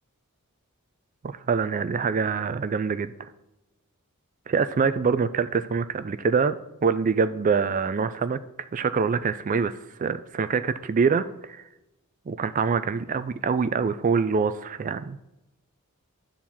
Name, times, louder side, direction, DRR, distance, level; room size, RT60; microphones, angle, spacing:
voice 1, 1.5-3.1 4.5-6.6 6.8-11.6 12.3-15.2, right 5 dB, 35° right, 12 dB, 0.4 m, -25 dB
10.5 x 4.3 x 7.2 m, 0.93 s
head